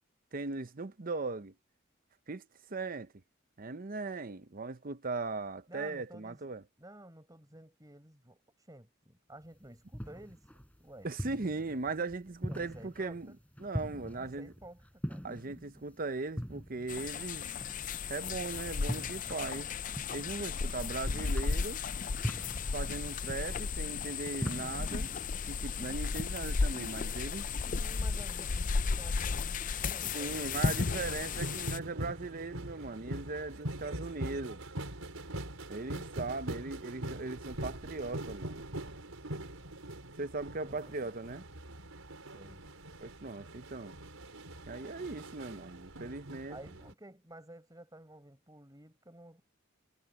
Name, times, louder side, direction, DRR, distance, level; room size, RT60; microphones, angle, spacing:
voice 1, 0.3-1.5 2.3-3.1 3.6-6.6 11.0-13.3 13.6-14.5 15.2-17.5 18.1-19.7 20.1-21.8 22.7-25.1 25.4-27.5 30.1-34.6 35.7-38.6 40.2-41.4 43.0-44.0 44.6-46.6, right 3 dB, 45° right, 0.8 m, -39 dB
voice 2, 5.7-6.5 6.8-8.4 8.7-10.4 10.8-11.1 12.5-13.4 14.1-15.3 20.5-21.1 27.7-31.5 40.6-40.9 42.3-42.6 46.5-49.4, right 1 dB, 15° right, 7.8 m, -52 dB
sound 1, 9.4-25.3, equal, 5° left, 7.7 m, -43 dB
sound 2, 16.9-31.8, left 5 dB, 40° left, 0.5 m, -34 dB
sound 3, 30.4-46.9, right 1 dB, 85° right, 4.9 m, -43 dB
head